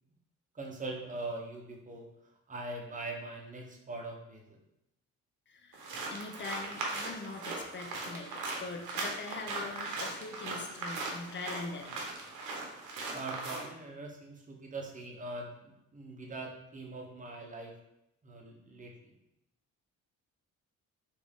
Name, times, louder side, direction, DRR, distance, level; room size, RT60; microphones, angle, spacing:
voice 1, 0.5-2.1 2.5-4.6 13.1-17.7 18.2-19.1, right 2 dB, 25° right, 1 dB, 0.8 m, -42 dB
voice 2, 5.5-12.1, left 3 dB, 40° left, 3 dB, 0.6 m, -43 dB
sound 1, 5.7-13.6, right 3 dB, 85° right, 0.9 m, -39 dB
3.5 x 2.6 x 3.4 m, 0.83 s
cardioid pair, 90°, 30 cm